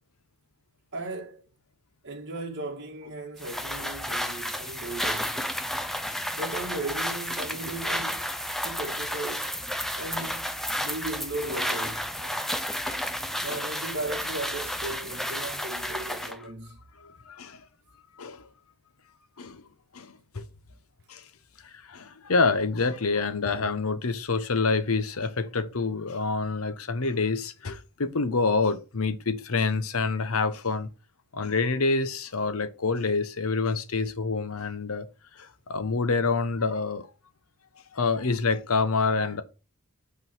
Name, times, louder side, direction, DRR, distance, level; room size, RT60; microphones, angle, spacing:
voice 1, 0.9-1.4 2.0-5.6 6.3-8.4 8.6-9.6 10.0-12.1 13.4-16.8 20.7-20.8, right 2 dB, 55° right, 1.8 m, -36 dB
sound 1, 3.4-16.4, equal, ahead, 0.5 m, -32 dB
voice 2, 5.7-6.3 10.2-10.3 12.7-13.6 16.2-16.3 17.0-17.6 18.2-18.5 19.4-19.6 19.9-20.5 21.1-21.2 21.6-30.9 31.3-35.1 35.3-37.1 37.9-39.4, left 4 dB, 75° left, 0.9 m, -27 dB
8.2 x 3.9 x 4.5 m
head